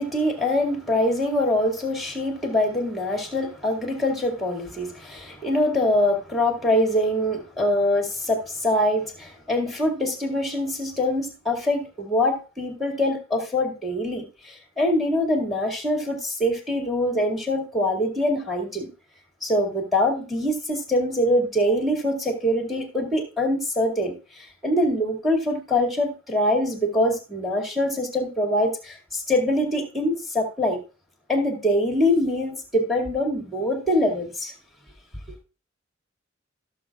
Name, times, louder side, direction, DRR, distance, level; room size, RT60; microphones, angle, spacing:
voice 1, 0.0-18.9 19.4-30.8 31.3-34.5, left 1 dB, ahead, 2.1 m, -24 dB
17.0 x 7.1 x 2.4 m
head